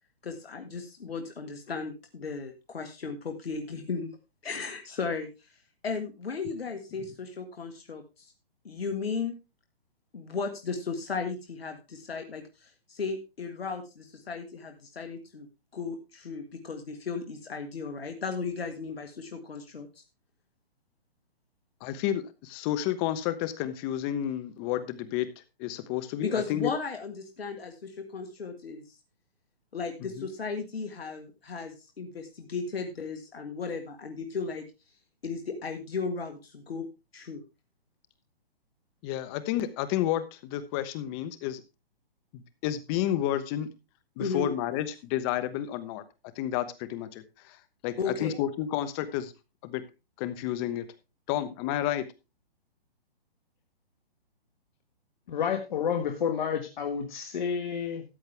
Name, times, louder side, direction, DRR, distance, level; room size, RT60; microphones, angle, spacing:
voice 1, 0.2-4.1 4.4-5.3 5.8-8.3 8.6-9.3 10.1-15.5 15.7-19.9 26.2-28.8 29.7-34.6 35.2-36.9 37.1-37.4 44.2-44.5 48.0-48.4, left 5 dB, 75° left, 6 dB, 1.8 m, -35 dB
voice 2, 21.8-25.3 25.6-26.7 30.2-30.3 39.0-41.6 42.3-43.7 44.2-46.0 46.4-47.6 47.8-49.3 49.6-49.8 50.2-50.9 51.3-52.0, left 12 dB, 25° left, 12 dB, 1.1 m, -31 dB
voice 3, 55.3-58.0, left 7 dB, 50° left, 5 dB, 1.6 m, -30 dB
13.5 x 8.7 x 3.4 m, 0.28 s
hypercardioid pair, 140°, 30 cm